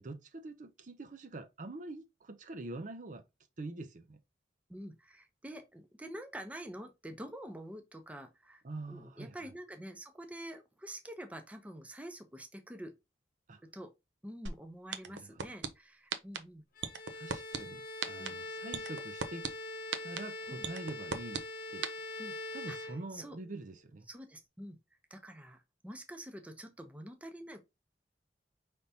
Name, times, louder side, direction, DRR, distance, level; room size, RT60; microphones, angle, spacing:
voice 1, 0.0-3.2 3.6-4.2 8.6-9.5 13.5-13.6 15.1-15.4 17.1-19.5 20.0-21.9 22.5-24.1, right 2 dB, 45° right, 0.6 m, -45 dB
voice 2, 4.7-8.6 8.9-12.9 13.6-13.9 14.2-16.6 18.2-18.4 20.5-20.6 22.2-22.4 22.7-23.4 24.1-24.8 25.1-27.6, right 1 dB, 10° right, 0.7 m, -47 dB
sound 1, 14.5-14.6 14.9-15.7 16.1-16.4 16.8-17.6 18.0-18.3 18.7-19.5 19.9-20.2 20.6-21.4 21.8-21.9, right 6 dB, 85° right, 0.7 m, -34 dB
Bowed string instrument, 16.8-23.5, left 2 dB, 50° left, 1.1 m, -43 dB
5.4 x 3.5 x 2.8 m
head